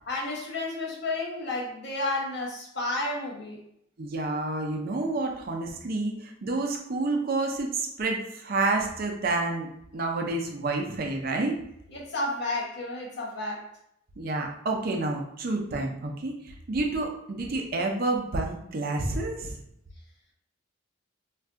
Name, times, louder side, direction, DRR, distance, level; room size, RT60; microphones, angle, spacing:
voice 1, 0.1-3.6 11.9-13.7, left 2 dB, 55° left, -2 dB, 0.8 m, -31 dB
voice 2, 4.0-11.5 14.2-19.6, right 2 dB, 45° right, 2 dB, 0.5 m, -29 dB
2.5 x 2.3 x 3.5 m, 0.76 s
head